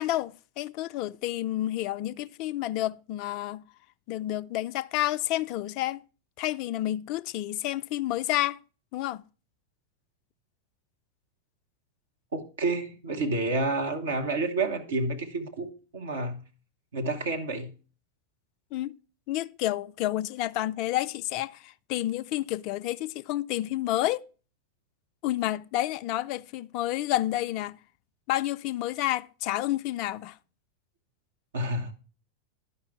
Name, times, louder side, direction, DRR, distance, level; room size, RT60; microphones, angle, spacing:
voice 1, 0.0-3.6 4.1-6.0 6.4-8.6 8.9-9.2 18.7-19.0 19.3-24.2 25.2-27.8 28.3-30.4, left 15 dB, 40° left, 0.3 m, -30 dB
voice 2, 12.3-16.4 16.9-17.7 31.5-31.9, right 2 dB, 65° right, 1.1 m, -29 dB
11.5 x 5.5 x 4.3 m
figure-of-eight pair, 90°, 0 cm